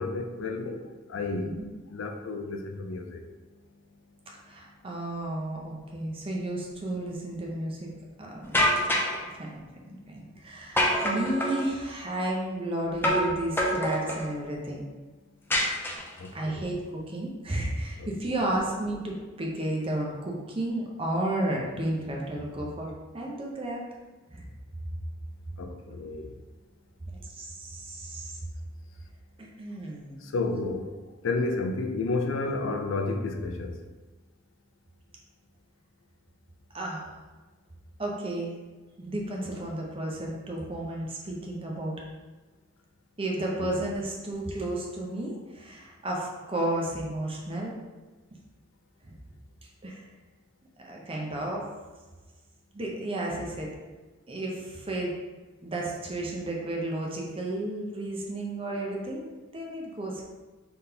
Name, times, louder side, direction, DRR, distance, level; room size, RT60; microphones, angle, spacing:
voice 1, 0.0-1.5 1.9-3.2 16.2-16.6 18.0-18.1 25.6-26.3 30.2-31.0 31.2-33.8 43.6-43.7, left 3 dB, 75° left, 4 dB, 0.4 m, -31 dB
voice 2, 4.5-7.9 8.2-9.0 9.3-9.6 9.9-14.8 16.3-23.8 24.3-24.4 27.1-28.4 29.6-30.2 36.7-37.1 38.0-38.6 39.0-41.9 43.2-47.8 49.0-49.1 49.8-50.0 50.8-51.7 52.7-53.7 54.3-55.1 55.6-59.3 59.5-60.2, right 1 dB, 30° right, -2 dB, 0.6 m, -32 dB
sound 1, 8.5-9.2 10.8-11.7 13.0-13.3 13.6-14.3 15.5-16.3, equal, 10° left, 0.5 m, -25 dB
3.9 x 3.5 x 2.8 m, 1.3 s
head